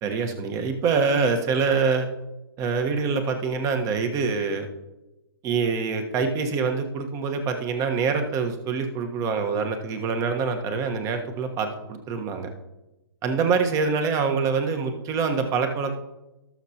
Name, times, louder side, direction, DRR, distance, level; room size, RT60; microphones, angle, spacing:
voice 1, 0.0-2.1 2.6-4.7 5.4-12.5 13.2-15.9, right 5 dB, 25° right, 6 dB, 1.3 m, -25 dB
19.5 x 6.7 x 2.9 m, 1.0 s
hypercardioid pair, 130°, 13 cm